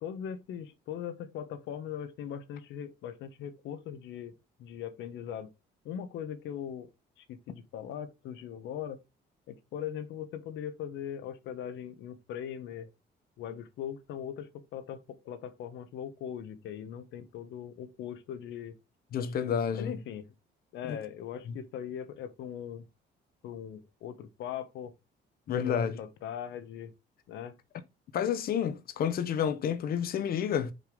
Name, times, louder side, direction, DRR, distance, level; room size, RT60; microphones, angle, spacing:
voice 1, 0.0-4.3 4.6-5.5 5.8-6.9 7.2-9.0 9.5-12.9 13.4-18.8 19.7-20.2 20.7-22.9 23.4-24.9 25.5-26.9 27.3-27.5, left 9 dB, 80° left, 1.0 m, -40 dB
voice 2, 19.1-19.9 20.8-21.0 21.5-21.6 25.5-26.0 28.1-30.7, left 8 dB, 55° left, 0.9 m, -30 dB
6.5 x 5.1 x 3.8 m
cardioid pair, 155°, 19 cm